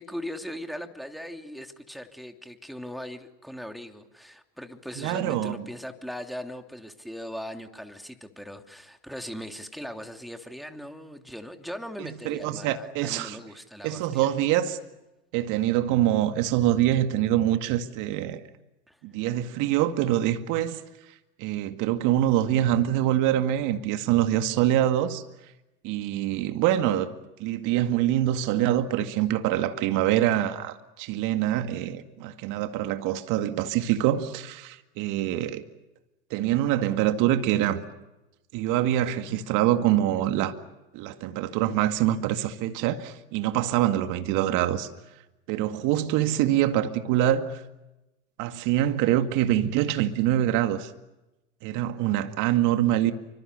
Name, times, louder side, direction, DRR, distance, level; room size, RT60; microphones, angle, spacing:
voice 1, 0.0-14.3 18.9-19.0, equal, ahead, 3.0 m, -39 dB
voice 2, 5.0-5.6 12.0-13.4 13.8-14.8 15.3-18.4 19.0-20.8 21.4-25.2 25.8-27.1 27.4-35.6 36.3-37.8 38.5-40.6 40.9-44.9 45.5-47.6 48.4-50.9 51.6-53.1, right 12 dB, 60° right, 2.1 m, -25 dB
29.0 x 25.5 x 6.9 m
hypercardioid pair, 85°, 36 cm